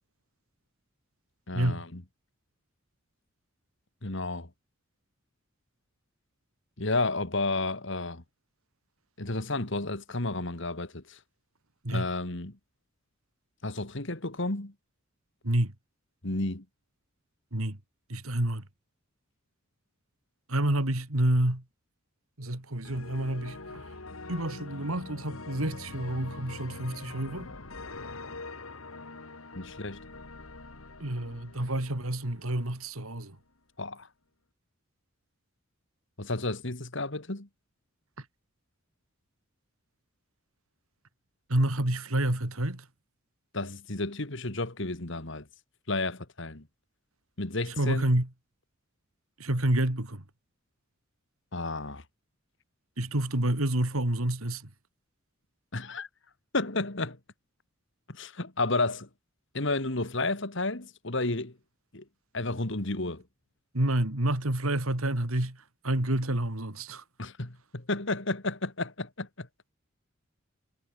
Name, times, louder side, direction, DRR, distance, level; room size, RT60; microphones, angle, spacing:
voice 1, 1.5-2.0 4.0-4.5 6.8-8.2 9.2-11.2 11.9-12.6 13.6-14.7 16.2-16.7 29.5-30.0 33.8-34.1 36.2-37.5 43.5-45.5 45.9-46.7 47.4-48.1 51.5-52.0 55.7-56.1 56.5-57.2 58.1-59.1 59.5-61.6 61.9-62.0 62.3-63.2 67.2-69.5, left 2 dB, 60° left, 2.3 m, -32 dB
voice 2, 18.1-18.6 20.5-21.6 22.4-23.8 24.3-27.5 31.0-33.4 38.2-38.3 41.5-42.9 47.8-48.3 49.4-50.2 53.0-54.7 63.7-67.0, right 1 dB, 85° right, 3.1 m, -28 dB
sound 1, 22.8-32.9, left 3 dB, 80° left, 2.6 m, -44 dB
head